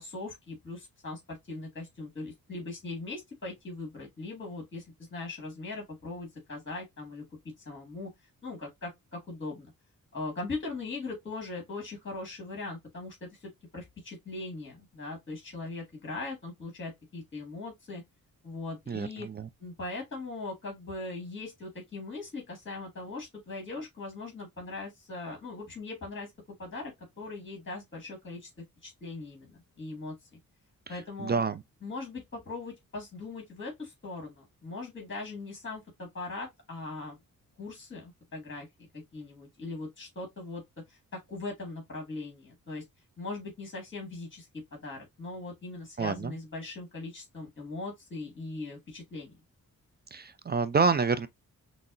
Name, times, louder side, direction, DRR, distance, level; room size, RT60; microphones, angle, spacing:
voice 1, 0.0-4.8 5.1-7.2 7.7-8.1 8.4-9.7 10.1-18.0 18.4-19.3 19.6-26.3 26.6-28.5 28.8-30.1 30.9-31.4 31.8-37.2 37.6-40.6 40.9-42.8 43.2-49.4, left 3 dB, 35° left, 2.0 m, -40 dB
voice 2, 18.9-19.5 30.9-31.6 46.0-46.3 50.1-51.3, right 5 dB, 30° right, 0.4 m, -28 dB
5.8 x 2.1 x 2.5 m
cardioid pair, 85°, 34 cm